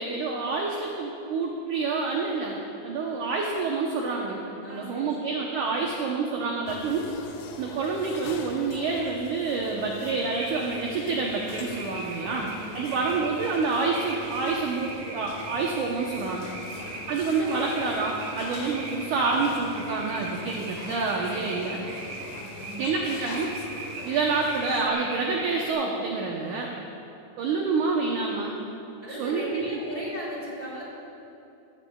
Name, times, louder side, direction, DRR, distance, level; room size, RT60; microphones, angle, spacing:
voice 1, 0.0-4.4 4.7-7.1 7.6-12.5 12.7-16.5 17.1-21.8 22.8-23.5 24.0-26.7 27.4-28.5 29.1-29.7, right 4 dB, 80° right, -1 dB, 1.8 m, -28 dB
voice 2, 4.6-5.3 12.2-13.1 16.6-17.1 21.8-21.9 22.4-22.9 28.4-28.6 29.0-30.8, equal, 10° left, -6 dB, 2.8 m, -38 dB
sound 1, 6.7-24.9, left 4 dB, 80° left, 2.3 m, -43 dB
sound 2, 10.1-25.7, right 3 dB, 60° right, 2.1 m, -40 dB
16.5 x 16.0 x 2.3 m, 2.8 s
omnidirectional pair, 4.8 m